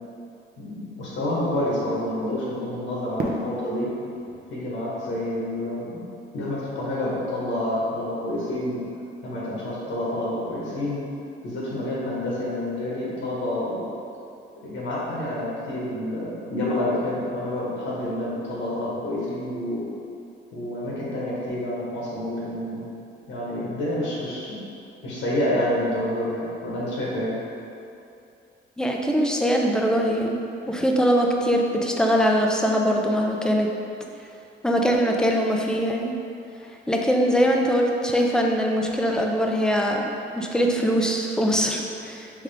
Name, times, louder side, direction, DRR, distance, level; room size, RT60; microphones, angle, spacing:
voice 1, 0.6-3.9 4.5-6.0 6.3-8.8 9.2-11.0 11.4-13.8 14.6-19.9 20.5-22.8 23.3-24.6 25.0-27.4, left 1 dB, 80° left, -6 dB, 1.2 m, -28 dB
Fireworks, 3.2-6.2, right 2 dB, 50° right, 0.5 m, -36 dB
voice 2, 28.8-30.4 30.7-33.7 34.6-36.2 36.9-40.1 40.4-42.4, equal, 5° left, 1 dB, 0.4 m, -22 dB
3.6 x 3.3 x 3.4 m, 2.6 s
cardioid pair, 95°, 20 cm